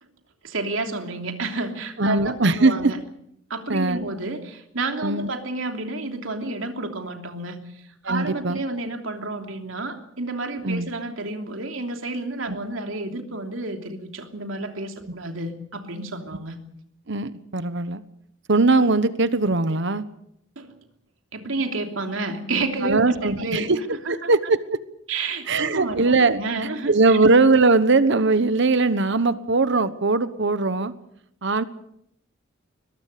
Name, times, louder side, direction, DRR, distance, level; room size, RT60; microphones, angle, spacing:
voice 1, 0.4-3.0 3.5-16.6 20.6-20.8 21.3-23.7 24.0-24.3 25.1-27.2, right 2 dB, 90° right, 5 dB, 3.1 m, -30 dB
voice 2, 2.0-2.9 3.7-4.0 5.0-5.3 8.0-8.6 10.6-10.9 12.5-12.6 17.1-18.0 18.5-20.0 22.8-23.8 24.1-24.8 25.5-26.4 26.9-30.9 31.4-31.6, right 3 dB, 65° right, 13 dB, 1.2 m, -20 dB
22.0 x 21.5 x 6.8 m, 0.74 s
head